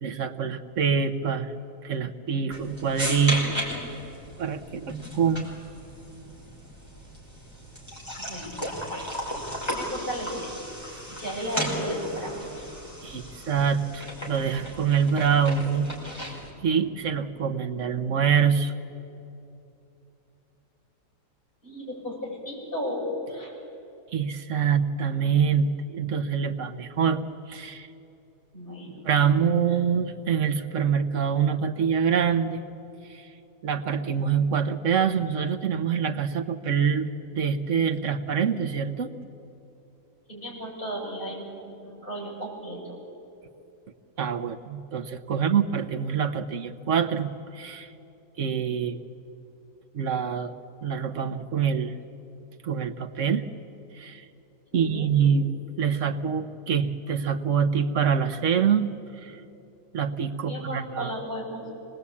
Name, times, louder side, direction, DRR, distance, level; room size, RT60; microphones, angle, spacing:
voice 1, 0.0-1.5 1.8-3.6 4.4-5.5 13.0-15.9 16.2-18.7 24.1-27.2 27.5-27.9 29.0-32.6 33.1-33.2 33.6-39.1 44.2-47.9 48.4-49.0 49.9-50.5 50.8-51.9 52.6-53.4 54.0-54.2 54.7-55.5 55.8-58.9 59.2-59.4 59.9-61.1, right 7 dB, 55° right, 8 dB, 1.2 m, -25 dB
sound 1, 2.5-16.5, equal, 15° left, 4.7 m, -35 dB
voice 2, 8.2-10.5 11.1-12.6 13.0-13.4 21.6-23.5 24.6-24.7 28.5-29.1 29.7-29.8 40.3-43.0 45.3-45.6 54.7-55.1 60.4-61.7, equal, 30° left, -4 dB, 6.9 m, -35 dB
25.5 x 20.5 x 8.5 m, 2.8 s
omnidirectional pair, 1.7 m